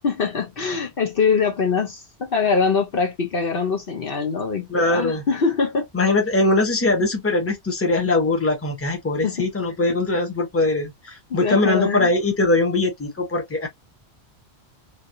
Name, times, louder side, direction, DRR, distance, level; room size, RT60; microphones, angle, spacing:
voice 1, 0.0-5.9 9.2-9.5 11.3-12.1, left 5 dB, 55° left, 1.0 m, -23 dB
voice 2, 4.7-5.2 5.9-13.7, left 2 dB, 15° left, 0.9 m, -21 dB
3.1 x 2.6 x 2.6 m
omnidirectional pair, 1.1 m